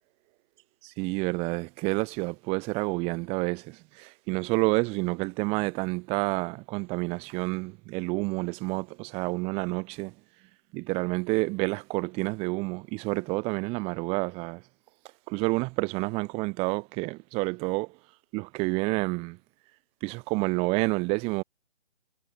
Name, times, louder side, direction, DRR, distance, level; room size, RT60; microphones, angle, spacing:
voice 1, 0.8-10.1 10.7-14.6 15.3-17.9 18.3-19.4 20.0-21.4, right 26 dB, 15° right, 3.1 m, -29 dB
hypercardioid pair, 155°, 35 cm